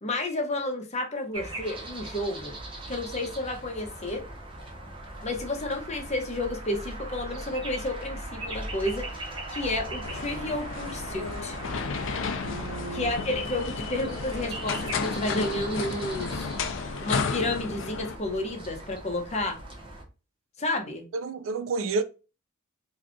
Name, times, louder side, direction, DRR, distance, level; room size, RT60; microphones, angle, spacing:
voice 1, 0.0-2.6 2.9-4.2 5.2-11.6 12.9-16.5 17.0-19.6 20.6-21.0, left 2 dB, 35° left, 0.7 m, -31 dB
sound 1, 1.3-20.0, right 1 dB, 25° right, 0.7 m, -39 dB
sound 2, 10.0-18.2, left 5 dB, 65° left, 0.4 m, -33 dB
voice 2, 12.4-13.1 21.1-22.0, right 3 dB, 70° right, 0.4 m, -30 dB
2.7 x 2.4 x 3.5 m
head